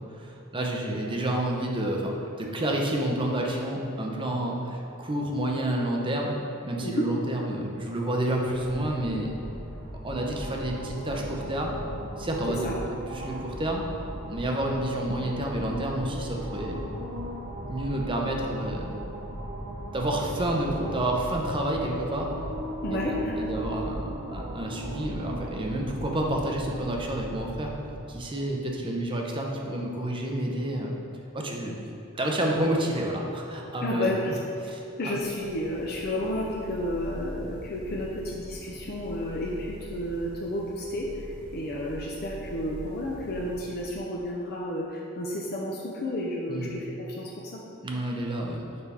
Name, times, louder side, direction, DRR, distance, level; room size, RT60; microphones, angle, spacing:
voice 1, 0.0-6.3 6.6-9.3 10.0-11.8 12.2-12.7 13.1-13.8 14.3-16.9 17.6-19.0 19.9-22.3 22.9-27.7 28.1-30.9 31.3-31.8 32.1-34.1 34.6-35.2 46.5-46.7 47.8-48.6, right 1 dB, 25° right, 0 dB, 0.7 m, -29 dB
sound 1, 8.5-28.0, equal, 45° right, 1.0 m, -37 dB
voice 2, 22.8-23.4 33.8-34.4 34.6-34.7 35.0-41.1 41.5-47.6, left 1 dB, 45° left, -3 dB, 0.6 m, -31 dB
sound 2, 35.0-44.2, equal, 5° right, 1.3 m, -43 dB
6.7 x 5.6 x 3.5 m, 2.8 s
head